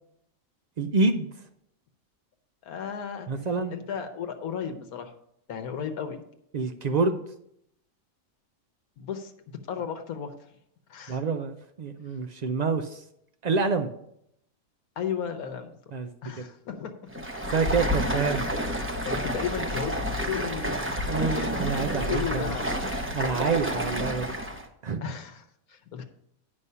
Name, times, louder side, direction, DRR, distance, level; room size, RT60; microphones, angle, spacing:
voice 1, 0.8-1.3 3.3-3.7 6.5-7.2 11.1-13.0 13.4-13.9 15.9-16.1 16.4-16.5 17.5-18.5 21.1-22.5 23.1-24.3 24.8-25.0, right 4 dB, 90° right, 6 dB, 0.3 m, -27 dB
voice 2, 2.6-3.3 3.7-5.1 5.5-6.2 9.0-10.3 10.9-11.2 15.0-15.7 16.2-17.2 17.6-17.9 19.0-19.9 20.2-20.9 21.1-21.7 21.9-22.9 25.0-26.0, left 7 dB, 85° left, 5 dB, 1.3 m, -34 dB
Stream, 17.1-24.7, equal, 15° right, 0.6 m, -29 dB
9.6 x 5.3 x 5.5 m, 0.74 s
omnidirectional pair, 1.5 m